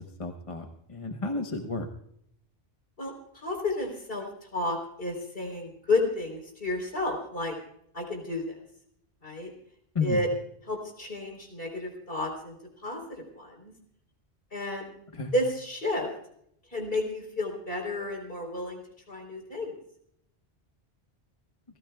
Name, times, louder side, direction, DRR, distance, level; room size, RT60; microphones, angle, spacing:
voice 1, 0.0-1.9 9.9-10.2 15.1-15.3, left 3 dB, 35° left, 4 dB, 1.1 m, -32 dB
voice 2, 3.0-7.6 7.9-8.6 9.2-9.5 10.0-10.3 10.7-12.6 12.8-13.7 14.5-14.9 15.3-16.1 16.7-18.8 19.1-19.7, left 2 dB, 60° left, 1 dB, 4.1 m, -31 dB
29.5 x 15.0 x 2.3 m, 0.70 s
omnidirectional pair, 1.1 m